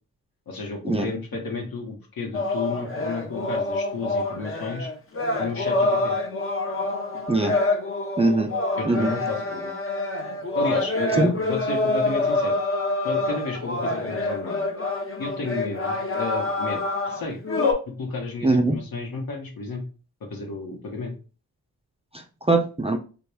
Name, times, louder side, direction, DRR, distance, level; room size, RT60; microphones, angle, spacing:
voice 1, 0.5-4.9 5.4-6.2 8.7-9.7 10.5-12.6 13.0-14.7 15.2-17.4 17.9-19.8 20.3-21.1, left 4 dB, 70° left, 2 dB, 1.0 m, -32 dB
sound 1, 2.3-17.7, left 2 dB, 35° left, 0.8 m, -26 dB
voice 2, 8.2-8.5 8.9-9.1 11.2-11.3 18.4-18.7 22.1-23.0, right 2 dB, 15° right, 4 dB, 0.4 m, -21 dB
3.0 x 2.3 x 2.3 m, 0.36 s
supercardioid pair, 45°, 38 cm